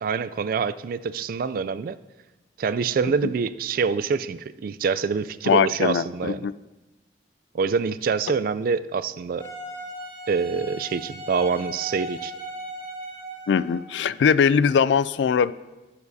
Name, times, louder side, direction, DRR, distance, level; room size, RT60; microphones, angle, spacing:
voice 1, 0.0-2.0 2.6-6.5 7.5-9.5 10.3-12.3, right 5 dB, 55° right, 15 dB, 0.3 m, -26 dB
voice 2, 5.5-6.5 13.5-15.5, left 6 dB, 80° left, 18 dB, 0.3 m, -21 dB
Wind instrument woodwind instrument, 9.4-13.9, right 1 dB, 50° left, 3.4 m, -37 dB
18.0 x 7.1 x 2.7 m, 1.1 s
head